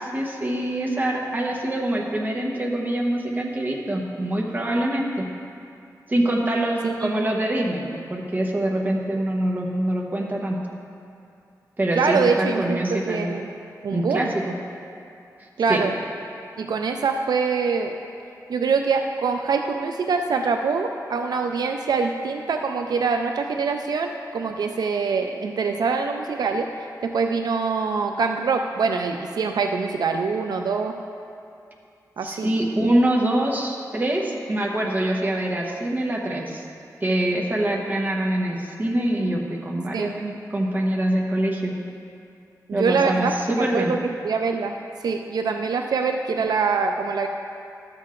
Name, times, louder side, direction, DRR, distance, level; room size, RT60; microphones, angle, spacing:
voice 1, 0.0-5.3 6.1-7.8 8.1-10.6 11.8-13.4 13.9-14.4 15.7-15.8 32.2-36.6 37.0-41.7 42.7-43.9, right 1 dB, 25° right, -1 dB, 0.9 m, -24 dB
voice 2, 6.8-7.3 12.0-13.5 13.8-14.3 15.6-16.0 16.6-17.9 18.5-26.7 27.0-30.9 32.2-32.5 39.9-40.1 42.7-44.0 44.2-44.8 45.0-47.3, right 5 dB, 80° right, 4 dB, 0.4 m, -24 dB
12.5 x 7.5 x 2.5 m, 2.5 s
wide cardioid pair, 120°, 7 cm